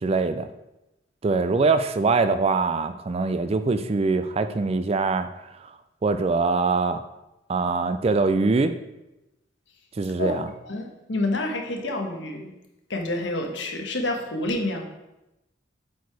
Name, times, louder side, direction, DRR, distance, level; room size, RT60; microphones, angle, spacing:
voice 1, 0.0-0.5 1.2-5.3 5.6-5.7 6.0-7.0 7.5-8.7 10.0-10.5, right 3 dB, 30° right, 10 dB, 0.3 m, -23 dB
voice 2, 10.6-12.5 12.9-14.8, left 2 dB, 65° left, 2 dB, 1.2 m, -28 dB
8.1 x 4.7 x 4.7 m, 0.95 s
head